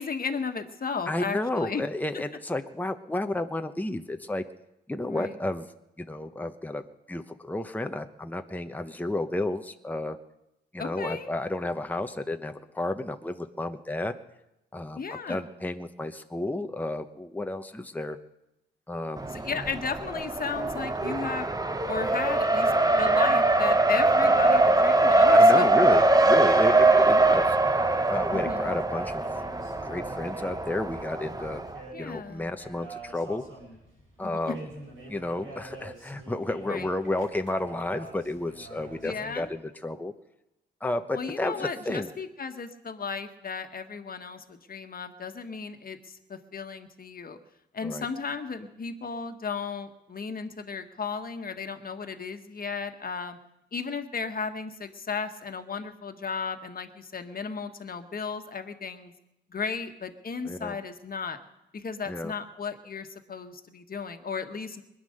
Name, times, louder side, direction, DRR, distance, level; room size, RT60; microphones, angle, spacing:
voice 1, 0.0-1.8 5.1-5.3 10.8-11.3 14.9-15.4 19.3-21.6 21.9-25.7 26.9-27.0 28.3-28.8 31.9-32.5 34.2-34.6 36.7-36.9 39.0-39.5 41.1-47.4 47.7-53.4 53.7-59.1 59.5-61.4 61.7-64.8, left 5 dB, 45° left, 7 dB, 1.6 m, -35 dB
voice 2, 1.1-4.4 4.9-5.7 6.0-10.2 10.7-14.1 14.7-18.2 18.9-19.3 25.3-27.6 28.1-29.3 29.8-31.6 32.0-33.4 34.2-34.7 35.1-40.1 40.8-42.1 47.8-48.1 60.4-60.8 62.1-62.3, left 2 dB, 10° left, 7 dB, 1.0 m, -32 dB
Race car auto racing, 19.2-31.8, right 2 dB, 20° right, 1.0 m, -22 dB
sound 1, 27.6-39.5, right 2 dB, 80° right, 6.2 m, -46 dB
21.0 x 9.5 x 6.7 m, 0.89 s
supercardioid pair, 60°, 20 cm